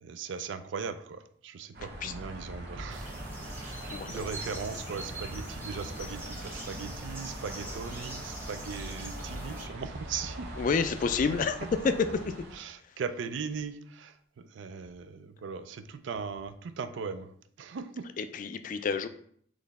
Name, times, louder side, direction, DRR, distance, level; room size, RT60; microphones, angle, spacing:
voice 1, 0.0-3.1 3.6-10.5 11.1-12.0 12.5-17.3 17.6-18.1, right 5 dB, 75° right, 11 dB, 0.4 m, -39 dB
sound 1, 1.7-12.6, right 1 dB, 60° right, 0.9 m, -42 dB
sound 2, 2.9-9.7, right 1 dB, 15° right, 1.2 m, -43 dB
voice 2, 3.9-4.3 7.6-7.7 10.6-11.6 11.8-12.1 18.2-19.1, left 5 dB, 45° left, 10 dB, 0.3 m, -29 dB
4.1 x 3.1 x 4.0 m, 0.62 s
head